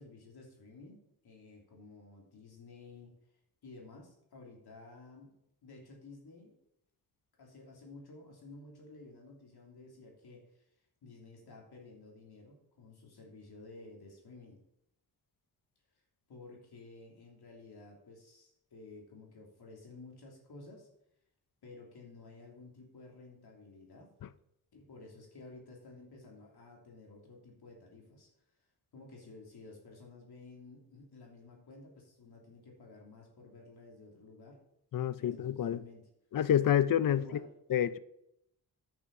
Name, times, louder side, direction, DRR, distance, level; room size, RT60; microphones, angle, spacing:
voice 1, 0.0-3.1 3.6-5.3 5.6-6.5 7.4-10.6 11.0-14.6 16.3-20.9 21.6-24.1 24.7-28.3 28.9-34.6 35.1-36.1 37.1-37.6, left 3 dB, 80° left, 3.1 m, -53 dB
voice 2, 34.9-35.8 36.3-37.2 37.7-38.0, left 10 dB, 60° left, 0.6 m, -28 dB
11.0 x 6.3 x 5.9 m
wide cardioid pair, 100°, 38 cm